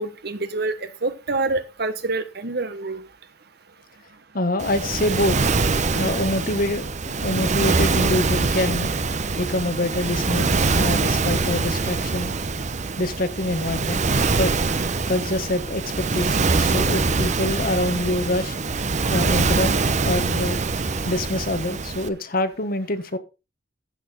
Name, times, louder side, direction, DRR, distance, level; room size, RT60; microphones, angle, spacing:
voice 1, 0.0-3.0, right 3 dB, 65° right, 11 dB, 1.3 m, -27 dB
voice 2, 4.3-5.3 5.9-8.9 9.4-12.4 13.0-14.0 14.3-14.5 15.1-18.6 19.1-20.6 21.0-23.2, left 1 dB, 55° left, 11 dB, 1.3 m, -25 dB
Waves surf, 4.6-22.1, right 3 dB, 40° right, 0.8 m, -23 dB
14.5 x 6.8 x 3.9 m, 0.29 s
head